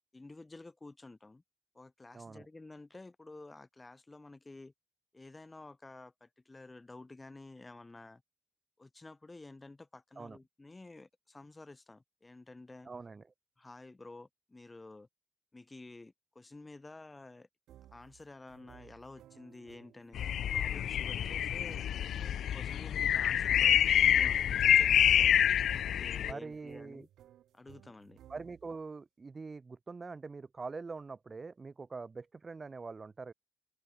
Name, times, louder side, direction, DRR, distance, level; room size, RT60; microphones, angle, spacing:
voice 1, 0.1-1.4 1.7-4.7 5.1-8.2 8.8-12.9 13.6-15.1 15.5-17.5 17.9-20.2 20.5-21.8 22.2-25.3 25.8-27.1 27.5-28.2, left 2 dB, 15° left, 6.1 m, -51 dB
voice 2, 2.1-2.5 10.2-10.4 12.8-13.2 26.2-27.1 28.3-33.3, right 4 dB, 25° right, 1.4 m, -44 dB
sound 1, 17.7-28.8, right 12 dB, 85° right, 3.2 m, -59 dB
sound 2, 20.1-26.3, left 10 dB, 70° left, 0.5 m, -27 dB
cardioid pair, 125°, 0 cm